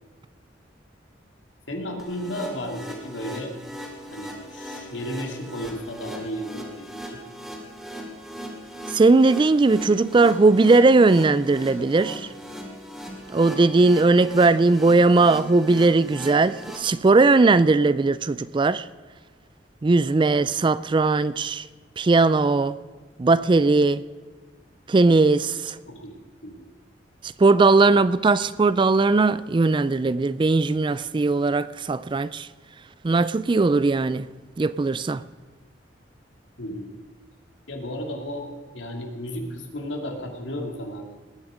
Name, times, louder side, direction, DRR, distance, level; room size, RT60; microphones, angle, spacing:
voice 1, 1.7-3.5 4.1-7.2 25.9-26.7 36.6-36.9 37.7-38.5 38.7-41.1, equal, 80° left, 2.6 m, -34 dB
sound 1, 2.0-16.8, equal, ahead, 2.6 m, -39 dB
voice 2, 8.9-12.3 13.3-18.8 19.8-21.6 22.0-22.8 23.2-24.0 24.9-25.8 27.4-32.5 33.0-34.3 34.6-35.2, right 3 dB, 25° right, 0.4 m, -19 dB
19.5 x 10.0 x 5.0 m
head